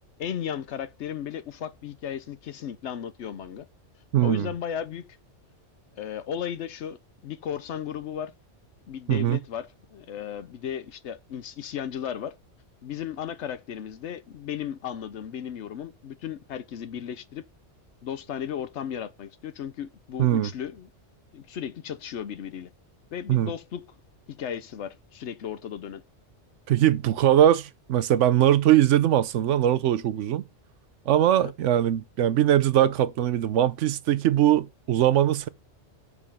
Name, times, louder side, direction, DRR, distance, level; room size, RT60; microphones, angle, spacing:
voice 1, 0.2-3.7 4.2-5.1 5.9-8.3 8.9-12.3 12.8-17.4 18.0-20.9 21.3-22.7 23.1-23.8 24.3-26.0 31.3-31.5, left 9 dB, 75° left, 1.0 m, -35 dB
voice 2, 4.1-4.5 9.1-9.4 20.2-20.5 23.3-23.5 26.7-30.4 31.1-35.5, right 11 dB, 85° right, 1.0 m, -21 dB
7.3 x 4.9 x 5.5 m
omnidirectional pair, 1.2 m